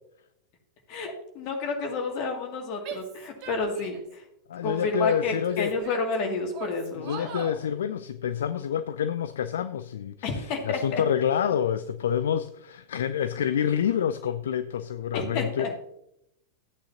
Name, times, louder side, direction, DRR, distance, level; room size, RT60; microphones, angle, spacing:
voice 1, 0.9-4.2 4.6-7.3 10.2-11.0 15.1-15.7, left 3 dB, 40° left, 2 dB, 2.2 m, -30 dB
Female speech woman speaking / Yell, 2.8-4.1 4.6-6.2 6.5-7.6, right 7 dB, 40° right, 1.6 m, -41 dB
voice 2, 4.5-5.8 6.9-15.7, left 9 dB, 60° left, 12 dB, 0.4 m, -28 dB
13.5 x 8.7 x 2.8 m, 0.80 s
figure-of-eight pair, 90°, 0 cm